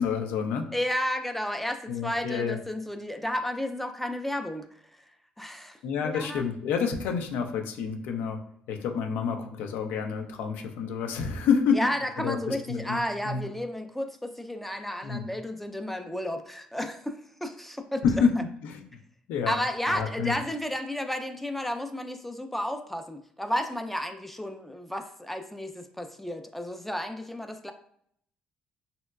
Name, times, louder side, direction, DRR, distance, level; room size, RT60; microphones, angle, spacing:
voice 1, 0.0-0.7 1.9-2.6 5.8-8.4 8.7-11.8 12.2-13.0 13.2-13.4 15.0-15.2 18.0-18.3 18.6-18.8 19.3-19.5 19.9-20.3, left 6 dB, 80° left, 5 dB, 0.4 m, -28 dB
voice 2, 0.7-4.7 5.4-5.8 6.0-6.4 11.7-18.0 19.5-27.7, left 1 dB, 5° left, 6 dB, 0.4 m, -32 dB
3.9 x 2.1 x 2.2 m, 0.66 s
supercardioid pair, 70°, 3 cm